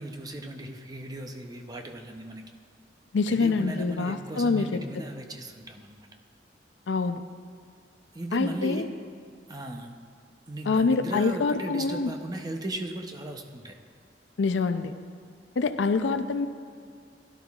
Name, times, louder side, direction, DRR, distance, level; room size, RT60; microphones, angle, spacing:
voice 1, 0.0-2.4 3.3-6.1 8.1-8.9 9.5-9.9 10.5-13.8, right 1 dB, 20° right, 4 dB, 0.6 m, -37 dB
voice 2, 3.1-4.8 6.9-7.2 8.3-8.9 10.7-12.1 14.4-14.9 15.6-16.5, left 4 dB, 85° left, 10 dB, 0.5 m, -25 dB
16.5 x 11.5 x 2.4 m, 2.1 s
head